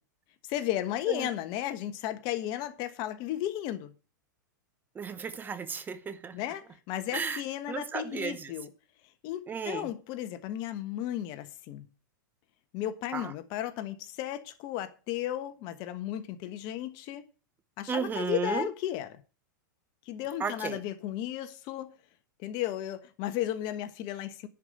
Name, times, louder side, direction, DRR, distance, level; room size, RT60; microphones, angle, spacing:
voice 1, 0.5-3.9 6.3-8.7 9.2-11.9 12.7-17.2 17.8-19.2 20.1-21.9 22.4-24.5, left 12 dB, 45° left, 1.3 m, -34 dB
voice 2, 5.0-6.3 7.1-7.4 7.7-8.5 9.5-9.9 13.1-13.3 17.9-18.7 20.4-20.8, right 6 dB, 20° right, 0.8 m, -34 dB
11.0 x 5.2 x 7.7 m
hypercardioid pair, 125°, 11 cm